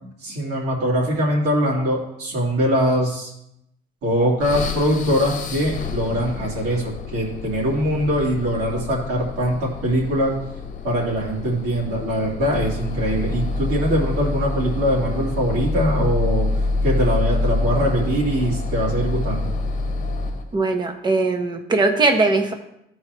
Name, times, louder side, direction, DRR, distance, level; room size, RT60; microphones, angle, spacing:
voice 1, 0.0-3.3 4.0-10.4 10.8-16.5 16.8-19.5, equal, 75° right, -3 dB, 2.7 m, -22 dB
sound 1, 4.4-20.5, left 3 dB, 50° left, 1.0 m, -27 dB
voice 2, 20.5-22.5, right 3 dB, 25° right, 4 dB, 1.1 m, -20 dB
14.0 x 4.7 x 3.0 m, 0.80 s
cardioid pair, 110°, 17 cm